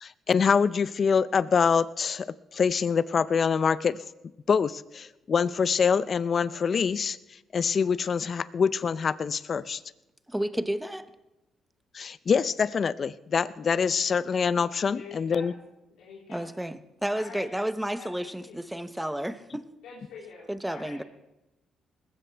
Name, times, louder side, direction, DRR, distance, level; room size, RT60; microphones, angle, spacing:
voice 1, 0.0-2.3 2.5-4.0 4.5-7.2 7.5-9.8 11.9-15.5, left 6 dB, 45° left, 16 dB, 0.5 m, -25 dB
voice 2, 10.3-11.1 16.3-19.6 20.5-21.0, right 1 dB, 5° right, 11 dB, 0.9 m, -31 dB
voice 3, 14.9-15.6 15.9-16.5 17.1-17.5 18.0-18.6 19.8-21.0, left 5 dB, 90° left, -5 dB, 2.9 m, -46 dB
20.0 x 15.5 x 3.4 m, 0.95 s
cardioid pair, 90°, 0 cm